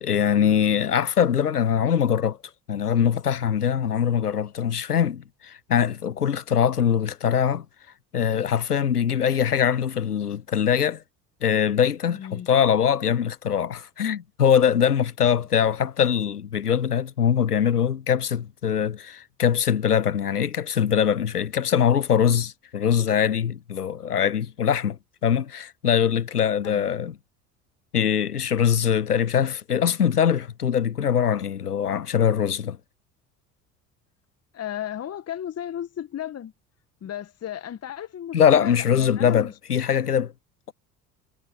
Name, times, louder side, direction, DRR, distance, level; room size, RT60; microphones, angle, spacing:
voice 1, 0.0-2.4 2.7-7.7 8.1-11.0 11.4-27.2 27.9-32.8 38.3-40.3, left 8 dB, 90° left, 0.6 m, -22 dB
voice 2, 12.1-12.5 26.6-26.9 34.5-36.5 37.0-39.5, left 10 dB, 35° left, 1.9 m, -34 dB
figure-of-eight pair, 60°, 45 cm